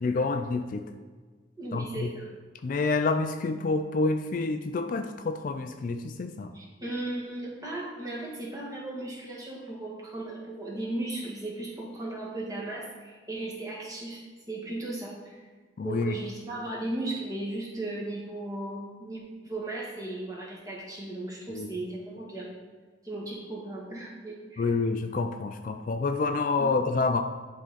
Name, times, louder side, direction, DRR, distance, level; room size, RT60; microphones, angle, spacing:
voice 1, 0.0-0.8 1.7-2.1 2.6-6.5 15.8-16.2 21.5-21.7 24.6-27.2, left 3 dB, 45° left, 7 dB, 0.4 m, -28 dB
voice 2, 1.6-2.3 6.5-15.4 15.8-22.5 23.0-24.7 26.6-26.7, right 2 dB, 20° right, -4 dB, 1.6 m, -36 dB
10.5 x 3.8 x 4.1 m, 1.4 s
head